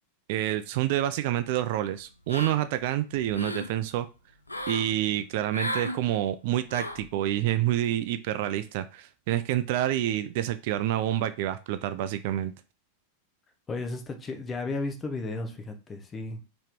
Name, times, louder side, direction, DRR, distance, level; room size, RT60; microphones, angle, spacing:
voice 1, 0.3-4.1 4.7-12.5, right 12 dB, 50° right, 12 dB, 0.3 m, -28 dB
sound 1, 2.3-2.8 3.2-3.7 4.5-4.9 5.5-6.0 6.7-7.1, left 1 dB, 85° left, 0.4 m, -34 dB
voice 2, 13.7-16.4, left 3 dB, 20° left, 5 dB, 0.8 m, -34 dB
4.5 x 3.0 x 3.6 m, 0.31 s
figure-of-eight pair, 90°, 0 cm